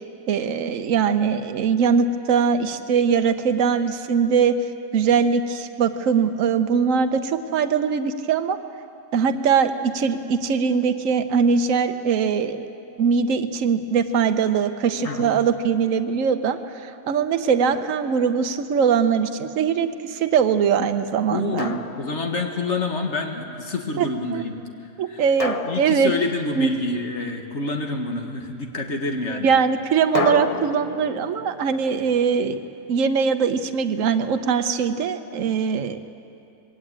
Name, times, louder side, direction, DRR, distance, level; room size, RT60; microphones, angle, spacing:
voice 1, 0.3-4.5 4.9-8.6 9.1-12.7 13.0-21.7 24.0-24.1 24.3-24.4 25.0-26.1 26.6-26.7 29.4-32.6 32.9-36.0, right 6 dB, 70° right, 8 dB, 1.2 m, -21 dB
voice 2, 15.0-15.4 21.3-24.5 25.1-25.2 25.6-29.5, left 3 dB, 55° left, 3 dB, 2.0 m, -27 dB
Drum, 15.0-15.7 17.7-18.8 21.6-22.7 25.4-27.0 30.1-33.1, left 3 dB, 30° left, 0.7 m, -32 dB
21.5 x 17.5 x 8.8 m, 2.6 s
omnidirectional pair, 1.5 m